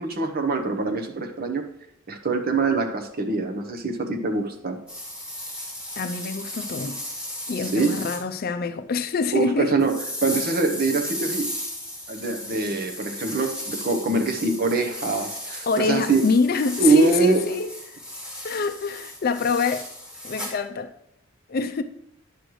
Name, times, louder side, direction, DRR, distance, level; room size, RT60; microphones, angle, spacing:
voice 1, 0.0-1.6 2.1-4.8 7.6-7.9 9.3-11.5 12.1-16.3 16.8-17.4, right 3 dB, 50° right, 0.9 m, -23 dB
sound 1, 4.9-8.2 9.8-20.6, left 1 dB, 5° right, 2.3 m, -35 dB
voice 2, 6.0-7.0 7.5-9.8 15.7-17.7 18.4-19.9 20.2-20.9 21.5-21.8, left 4 dB, 45° left, 0.5 m, -25 dB
10.0 x 6.4 x 3.1 m
head